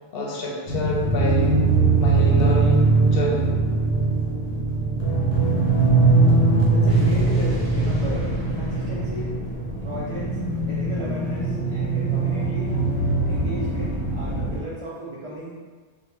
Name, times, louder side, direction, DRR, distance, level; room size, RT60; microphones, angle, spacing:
voice 1, 0.1-1.6 1.9-3.5, left 1 dB, 65° left, -2 dB, 0.7 m, -28 dB
sound 1, 0.7-14.6, right 3 dB, 85° left, 0.9 m, -21 dB
voice 2, 6.7-9.3 9.8-10.4 10.7-12.8 13.2-15.7, right 1 dB, 60° right, -7 dB, 0.3 m, -35 dB
Explosion, 6.9-11.2, equal, 35° right, 0.7 m, -36 dB
2.3 x 2.1 x 3.0 m, 1.4 s
omnidirectional pair, 1.1 m